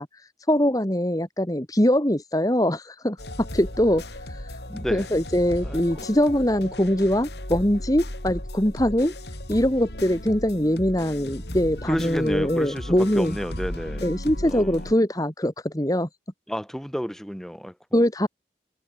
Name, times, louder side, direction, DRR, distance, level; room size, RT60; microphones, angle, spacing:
voice 1, 0.0-4.6 4.9-9.2 9.5-13.4 14.0-16.1 17.9-18.3, equal, 20° left, 2.1 m, -23 dB
sound 1, 3.2-14.9, left 1 dB, 70° left, 6.4 m, -36 dB
voice 2, 4.7-5.1 5.6-6.1 11.8-14.1 14.4-14.8 16.5-17.7, equal, ahead, 5.0 m, -31 dB
head